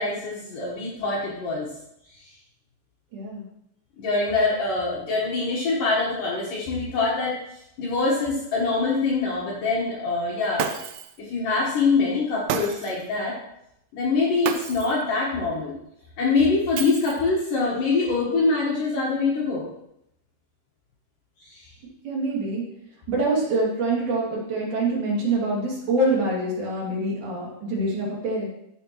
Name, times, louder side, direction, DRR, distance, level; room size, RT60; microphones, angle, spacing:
voice 1, 0.0-1.7 4.0-7.3 7.8-10.7 11.2-13.3 13.9-15.8 16.2-19.7 21.4-21.7, left 3 dB, 60° left, -4 dB, 2.5 m, -24 dB
voice 2, 3.1-3.4 22.0-22.7 23.1-28.5, right 2 dB, 50° right, -4 dB, 3.6 m, -25 dB
Shatter, 10.6-11.2 12.5-13.1 14.4-15.0 16.8-17.4, right 8 dB, 85° right, 2.3 m, -31 dB
14.0 x 6.9 x 3.1 m, 0.80 s
omnidirectional pair, 5.2 m